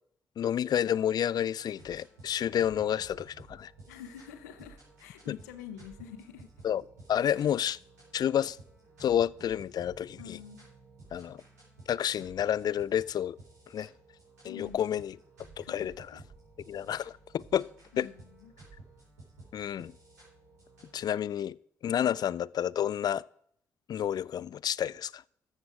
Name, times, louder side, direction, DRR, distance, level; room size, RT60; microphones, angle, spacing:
voice 1, 0.4-3.7 5.3-5.4 6.6-6.8 7.1-7.8 8.1-8.6 9.0-10.4 11.1-11.4 11.9-13.4 13.7-13.9 14.4-15.2 15.6-16.1 16.7-17.7 18.0-18.1 19.5-19.9 20.9-21.6 21.8-23.3 23.9-25.2, left 10 dB, 50° left, 0.4 m, -30 dB
sound 1, 1.3-21.1, right 3 dB, 90° right, 4.6 m, -54 dB
voice 2, 3.9-6.5 7.2-7.3 10.2-10.7 14.4-14.9 15.6-16.2 17.9-18.5, left 9 dB, 85° left, 0.9 m, -47 dB
12.5 x 7.4 x 4.9 m
hypercardioid pair, 40°, 9 cm